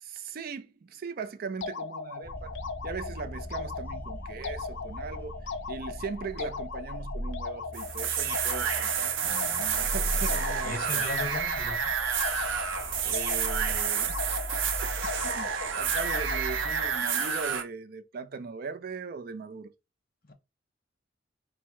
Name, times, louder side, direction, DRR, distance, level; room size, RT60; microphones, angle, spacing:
voice 1, 0.0-2.5 2.8-5.4 5.7-9.2 9.6-11.1 13.0-14.1 14.5-14.9 15.2-15.5 15.7-19.7, right 5 dB, 50° right, 0.4 m, -39 dB
sound 1, 1.6-17.0, left 5 dB, 75° left, 0.6 m, -39 dB
sound 2, 2.2-17.0, equal, 10° left, 0.6 m, -39 dB
sound 3, 7.7-17.6, right 7 dB, 85° right, 0.7 m, -30 dB
voice 2, 9.3-9.6 10.6-11.9 20.3-20.4, left 3 dB, 50° left, 0.8 m, -37 dB
4.3 x 2.1 x 4.5 m
head